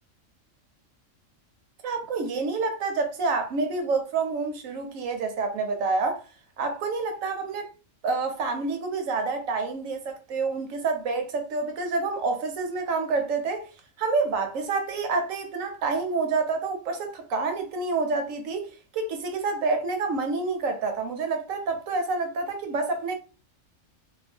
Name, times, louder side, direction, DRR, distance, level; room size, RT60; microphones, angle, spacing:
voice 1, 1.8-6.3 6.6-7.7 8.0-13.7 14.0-23.2, right 3 dB, 90° right, 1.1 m, -28 dB
2.6 x 2.2 x 3.4 m
omnidirectional pair, 1.3 m